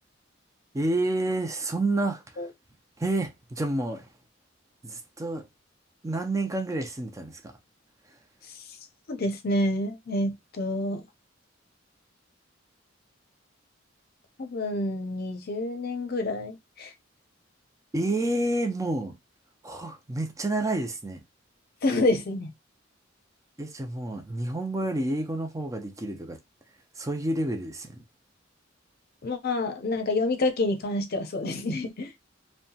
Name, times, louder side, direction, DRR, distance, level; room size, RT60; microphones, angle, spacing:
voice 1, 0.7-2.5 3.0-4.1 4.8-5.5 6.0-7.6 17.9-19.2 19.6-21.2 23.6-26.4 27.0-28.0, right 2 dB, 15° right, 0.5 m, -29 dB
voice 2, 9.1-11.0 14.4-16.9 21.8-22.5 29.2-32.1, left 2 dB, 55° left, 0.6 m, -28 dB
2.7 x 2.2 x 2.7 m
head